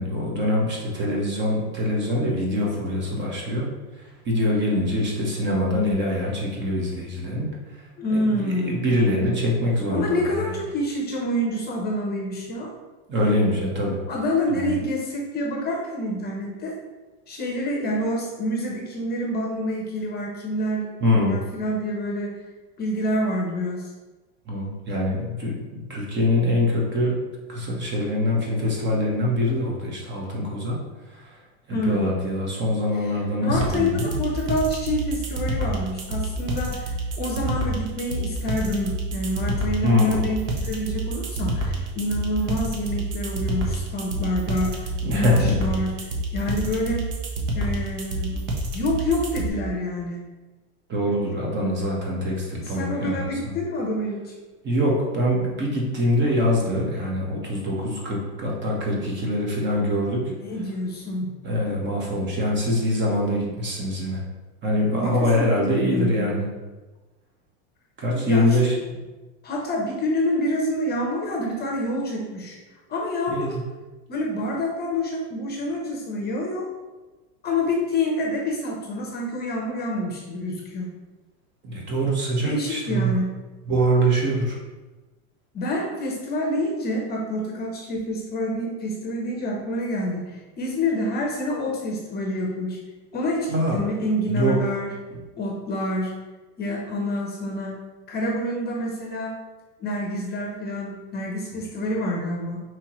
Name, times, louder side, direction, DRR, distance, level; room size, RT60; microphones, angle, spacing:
voice 1, 0.0-3.7 4.2-7.5 8.1-10.3 13.1-14.0 14.5-14.7 21.0-21.4 24.5-27.2 27.5-30.8 31.1-31.4 31.7-34.2 39.8-40.3 45.0-45.6 50.9-53.3 54.6-60.3 61.4-64.2 64.6-66.5 68.0-68.9 73.3-73.6 81.6-83.2 83.7-84.6 93.5-93.8 94.3-94.6, left 1 dB, 30° right, -2 dB, 1.2 m, -24 dB
voice 2, 8.0-8.8 9.9-12.7 14.1-16.8 17.3-20.9 21.3-22.4 22.8-23.9 31.7-32.1 33.0-45.9 46.3-47.0 47.5-48.4 48.7-50.2 52.6-54.3 60.3-61.3 64.9-66.3 68.1-68.7 69.4-72.6 72.9-73.6 74.1-76.7 77.4-80.9 82.4-83.3 85.5-92.8 93.1-94.9 95.4-96.1 96.6-97.8 98.1-99.3 99.8-102.6, left 1 dB, 30° left, 0 dB, 0.8 m, -27 dB
sound 1, 33.5-49.5, right 1 dB, 60° right, 1.0 m, -28 dB
5.4 x 3.1 x 3.0 m, 1.2 s
supercardioid pair, 125°, 34 cm